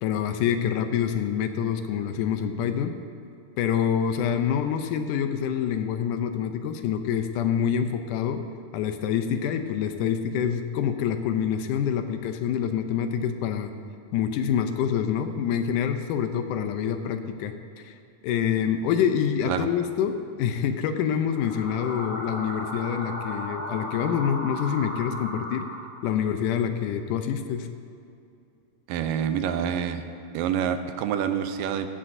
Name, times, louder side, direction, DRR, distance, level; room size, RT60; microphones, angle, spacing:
voice 1, 0.0-3.0 3.6-8.4 8.7-13.7 14.1-17.5 17.8-17.9 18.2-25.7 26.0-27.7, left 8 dB, 80° left, 8 dB, 2.0 m, -26 dB
sound 1, 21.2-26.3, left 1 dB, 35° left, 3.7 m, -36 dB
voice 2, 28.9-30.1 30.3-31.9, right 8 dB, 85° right, 8 dB, 2.4 m, -27 dB
16.5 x 14.0 x 2.7 m, 2.6 s
omnidirectional pair, 3.9 m